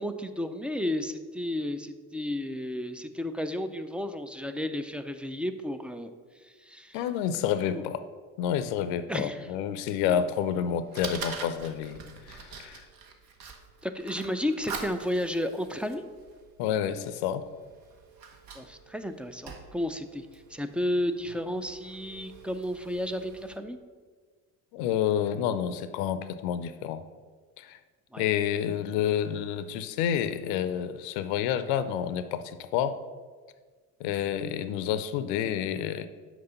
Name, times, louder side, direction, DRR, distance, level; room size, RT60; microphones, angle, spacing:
voice 1, 0.0-6.1 6.4-7.0 7.7-7.8 9.1-9.5 12.6-12.7 13.8-16.1 18.5-23.8 28.1-28.3, left 1 dB, 5° right, 9 dB, 0.4 m, -32 dB
voice 2, 6.9-8.0 8.4-12.0 12.3-12.9 16.6-17.4 24.7-27.0 27.6-27.8 28.2-33.0 34.0-36.1, left 9 dB, 65° left, 12 dB, 0.6 m, -29 dB
Fire, 10.1-23.6, right 5 dB, 55° right, 1.1 m, -45 dB
5.9 x 4.8 x 5.6 m, 1.5 s
hypercardioid pair, 55°, 43 cm